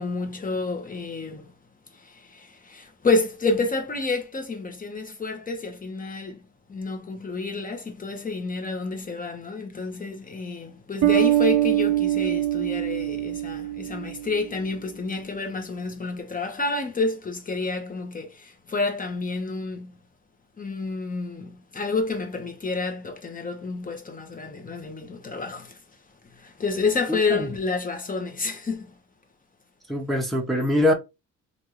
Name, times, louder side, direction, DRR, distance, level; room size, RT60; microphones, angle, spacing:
voice 1, 0.0-1.5 1.9-6.4 6.7-19.9 20.6-25.8 26.3-28.9, left 3 dB, 25° left, 1.0 m, -29 dB
Bass guitar, 11.0-14.5, right 14 dB, 70° right, 0.6 m, -23 dB
voice 2, 29.9-30.9, left 1 dB, ahead, 1.0 m, -22 dB
3.5 x 2.6 x 3.0 m
cardioid pair, 90°, 30 cm